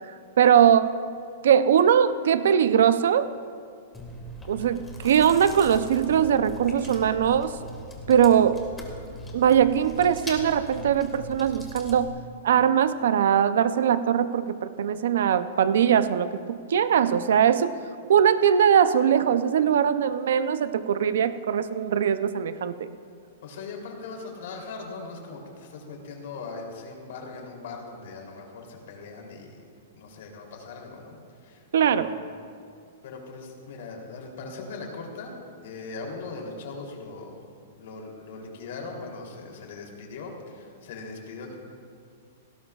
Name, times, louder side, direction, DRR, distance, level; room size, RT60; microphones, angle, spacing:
voice 1, 0.4-0.9 1.4-3.3 4.5-7.6 8.1-8.6 9.3-12.1 12.4-17.7 18.1-22.9 31.7-32.1, right 8 dB, 75° right, 12 dB, 0.5 m, -21 dB
Chewing mastication, 3.9-12.1, equal, 10° left, 1.6 m, -40 dB
voice 2, 23.4-29.6 29.9-31.1 31.4-32.1 33.0-35.3 35.6-37.4 37.8-41.5, left 3 dB, 60° left, 0 dB, 3.2 m, -40 dB
17.5 x 17.5 x 2.4 m, 2.2 s
hypercardioid pair, 160°, 0 cm